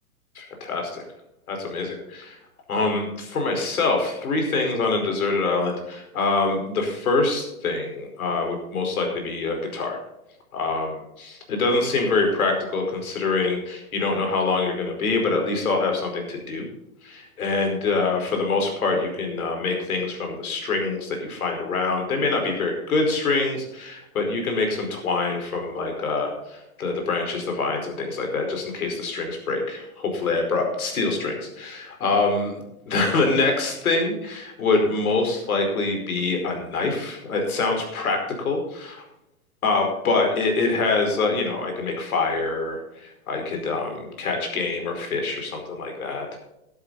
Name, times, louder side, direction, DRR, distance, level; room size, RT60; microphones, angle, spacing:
voice 1, 0.3-1.0 1.5-2.4 2.7-10.0 10.5-16.7 17.0-32.5 32.9-39.0 39.6-46.5, left 3 dB, 70° left, 3 dB, 4.9 m, -25 dB
12.5 x 12.0 x 4.2 m, 0.88 s
hypercardioid pair, 160°, 44 cm